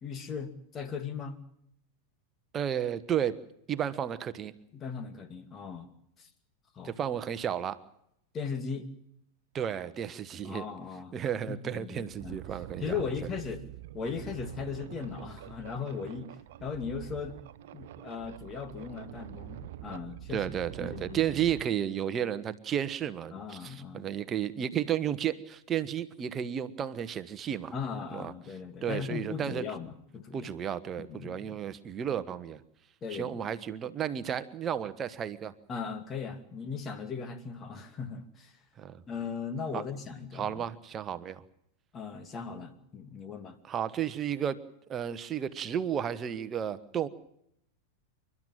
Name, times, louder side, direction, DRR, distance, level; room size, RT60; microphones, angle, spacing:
voice 1, 0.0-1.4 4.7-5.9 6.2-6.3 6.7-7.0 8.3-8.9 10.4-12.4 12.8-13.6 13.9-17.4 17.7-20.5 20.8-21.4 23.3-24.1 27.7-30.5 31.0-31.6 33.0-33.4 35.7-38.6 39.1-40.6 41.9-43.6, left 6 dB, 25° left, 9 dB, 2.4 m, -38 dB
voice 2, 2.5-3.4 3.7-4.5 6.8-7.8 9.5-10.6 11.1-12.9 20.3-27.7 28.1-28.3 28.8-29.6 30.3-32.6 33.1-35.5 38.8-39.0 39.7-39.8 40.3-41.4 43.7-44.6 44.9-47.1, right 9 dB, 25° right, 14 dB, 1.3 m, -32 dB
sound 1, 11.9-21.6, right 14 dB, 55° right, 0.8 m, -45 dB
28.5 x 12.5 x 9.2 m, 0.76 s
figure-of-eight pair, 90°, 0 cm